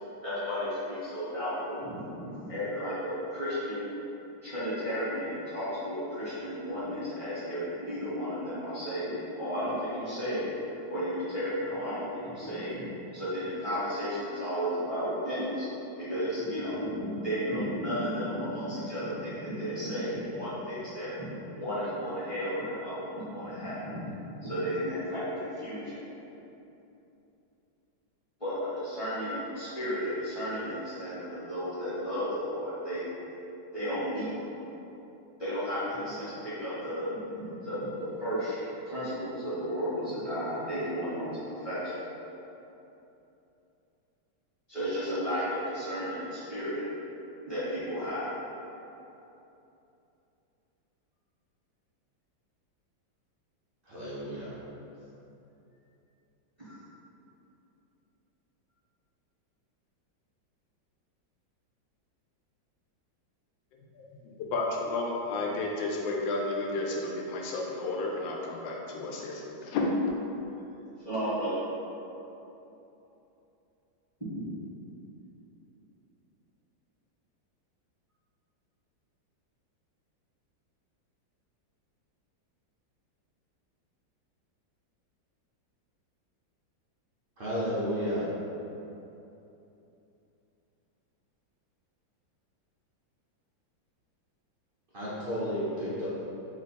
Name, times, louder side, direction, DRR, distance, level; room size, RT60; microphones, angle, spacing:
voice 1, 0.2-3.9 4.4-10.5 10.9-15.7 16.0-24.1 24.4-26.0 28.4-33.1 33.7-34.3 35.4-41.9 44.7-46.8 47.4-48.3 56.6-56.7 71.0-71.6, equal, 20° left, -13 dB, 1.2 m, -33 dB
voice 2, 53.8-54.5 87.4-88.3 94.9-96.1, equal, 85° right, -10 dB, 0.4 m, -32 dB
voice 3, 64.4-69.9, left 3 dB, 80° left, -1 dB, 1.3 m, -32 dB
3.1 x 3.1 x 4.2 m, 2.9 s
omnidirectional pair, 2.1 m